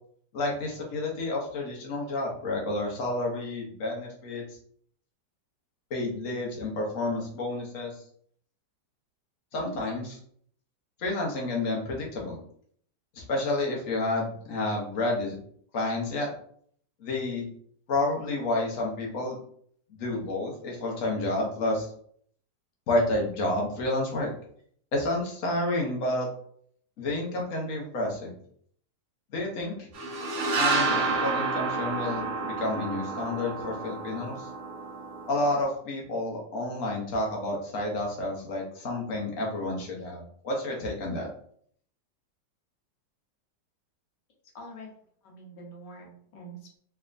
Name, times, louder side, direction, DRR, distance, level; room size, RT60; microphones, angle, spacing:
voice 1, 0.3-4.4 5.9-8.0 9.5-10.2 11.0-12.4 13.1-15.3 15.7-16.3 17.0-17.5 17.9-19.4 20.0-21.9 22.9-24.3 24.9-26.3 27.0-28.4 29.3-29.9 30.6-34.5 35.3-41.3, left 2 dB, 55° left, -1 dB, 1.2 m, -30 dB
sound 1, 29.9-35.6, right 3 dB, 55° right, 0.9 m, -30 dB
voice 2, 44.5-44.9 45.2-46.8, right 1 dB, 80° left, -1 dB, 1.6 m, -45 dB
3.4 x 3.3 x 2.5 m, 0.62 s
omnidirectional pair, 1.9 m